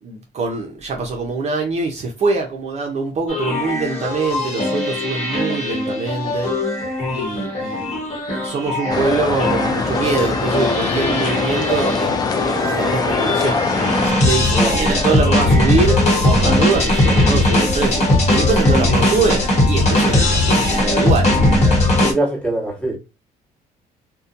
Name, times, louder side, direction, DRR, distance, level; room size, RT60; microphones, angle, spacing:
voice 1, 0.0-6.5 7.1-8.0 8.3-13.6 14.0-21.3, right 4 dB, 40° right, 0.5 m, -23 dB
sound 1, 3.3-22.1, left 1 dB, 40° left, 1.0 m, -19 dB
sound 2, 8.9-14.1, left 4 dB, 25° left, 0.4 m, -22 dB
voice 2, 14.5-15.0 22.0-23.0, right 1 dB, 5° left, 1.2 m, -23 dB
2.6 x 2.1 x 2.5 m
cardioid pair, 110°, 17 cm